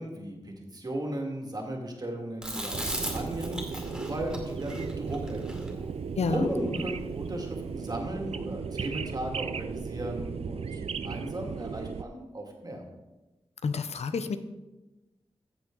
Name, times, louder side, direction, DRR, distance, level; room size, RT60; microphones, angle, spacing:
voice 1, 0.0-5.7 6.3-12.8, right 1 dB, 40° right, 1 dB, 2.1 m, -37 dB
Chewing mastication, 2.4-6.8, equal, 5° right, 2.3 m, -35 dB
sound 1, 2.7-12.0, right 6 dB, 75° right, 0.4 m, -36 dB
voice 2, 6.2-6.5 13.6-14.4, left 4 dB, 85° left, 10 dB, 0.7 m, -29 dB
14.5 x 7.3 x 3.8 m, 1.1 s
wide cardioid pair, 105°, 11 cm